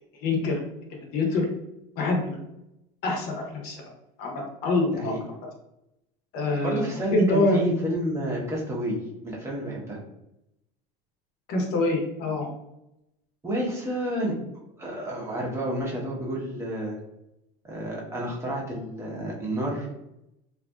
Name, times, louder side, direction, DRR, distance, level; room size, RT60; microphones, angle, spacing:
voice 1, 0.2-0.6 1.0-1.5 2.0-2.4 3.0-3.8 4.2-5.1 6.3-6.8 7.1-7.6 11.5-12.5, left 2 dB, 55° left, 1 dB, 0.7 m, -25 dB
voice 2, 6.6-9.0 9.2-10.0 13.4-14.3 14.8-17.0 17.6-19.9, right 1 dB, 15° right, -4 dB, 0.8 m, -30 dB
2.6 x 2.4 x 2.2 m, 0.86 s
supercardioid pair, 120°, 18 cm